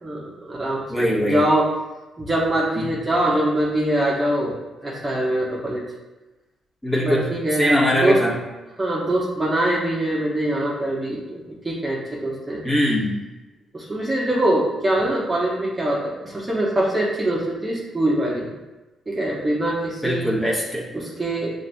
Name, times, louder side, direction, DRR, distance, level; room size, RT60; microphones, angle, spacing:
voice 1, 0.0-1.7 2.2-4.5 4.8-5.8 7.0-7.7 7.9-8.2 8.8-12.6 13.7-18.5 19.1-20.3 20.9-21.5, right 1 dB, 25° right, -5 dB, 1.1 m, -23 dB
voice 2, 0.9-1.4 2.8-2.9 6.8-8.3 12.6-13.2 20.0-20.8, equal, 10° left, -5 dB, 1.4 m, -21 dB
6.8 x 2.6 x 2.3 m, 1.1 s
cardioid pair, 70°, 0 cm